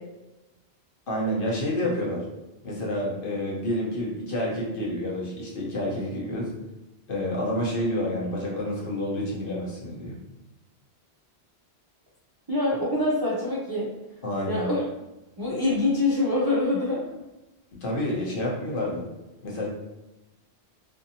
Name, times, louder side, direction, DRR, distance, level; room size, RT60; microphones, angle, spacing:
voice 1, 1.1-2.2 2.6-6.5 7.1-10.2 14.2-14.6 17.7-19.1 19.4-19.7, left 1 dB, 60° left, -4 dB, 1.0 m, -29 dB
voice 2, 12.5-13.9 14.5-14.8 15.4-17.1, left 2 dB, 35° right, -6 dB, 0.3 m, -25 dB
2.6 x 2.5 x 2.7 m, 1.0 s
omnidirectional pair, 1.1 m